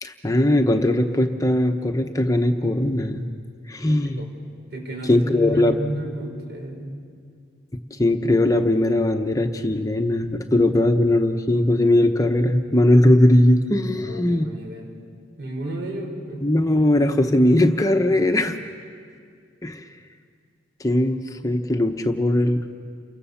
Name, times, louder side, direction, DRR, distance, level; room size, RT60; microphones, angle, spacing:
voice 1, 0.0-3.3 3.7-4.2 5.0-5.8 8.0-14.5 16.4-18.6 19.6-19.8 20.8-22.6, left 1 dB, 20° left, 6 dB, 0.8 m, -19 dB
voice 2, 4.7-6.9 14.0-14.9 15.4-16.4, right 1 dB, 60° right, 1 dB, 5.6 m, -32 dB
29.5 x 24.5 x 7.1 m, 2.2 s
head